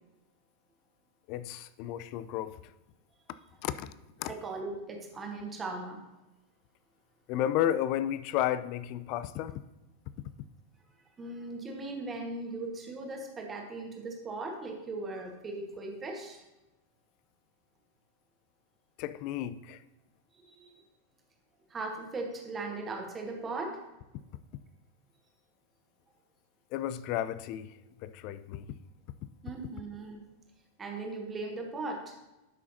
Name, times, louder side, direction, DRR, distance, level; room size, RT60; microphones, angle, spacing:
voice 1, 1.3-2.6 3.6-3.9 4.2-4.4 7.3-9.6 19.0-19.8 26.7-28.7, left 11 dB, 45° left, 0.3 m, -33 dB
voice 2, 4.3-6.0 11.2-16.4 20.3-20.8 21.7-23.8 29.4-30.2 30.8-32.1, right 3 dB, 20° right, 1.5 m, -38 dB
12.0 x 6.1 x 2.8 m
figure-of-eight pair, 90°, 0 cm